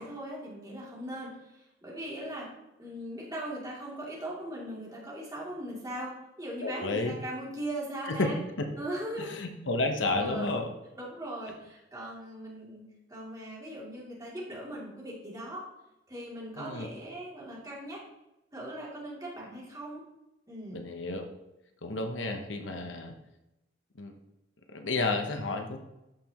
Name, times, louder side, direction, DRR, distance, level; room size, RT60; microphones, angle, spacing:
voice 1, 0.0-2.5 2.8-8.4 8.8-9.3 10.0-10.5 10.9-12.8 13.1-15.6 16.1-18.0 18.5-20.0 20.5-20.8, right 1 dB, 20° right, -6 dB, 2.9 m, -39 dB
voice 2, 6.6-7.1 8.1-8.3 9.2-10.7 16.6-16.9 20.7-21.3 21.8-23.1 24.0-24.1 24.7-25.8, left 2 dB, 80° left, 5 dB, 1.0 m, -31 dB
13.5 x 5.8 x 3.0 m, 0.93 s
head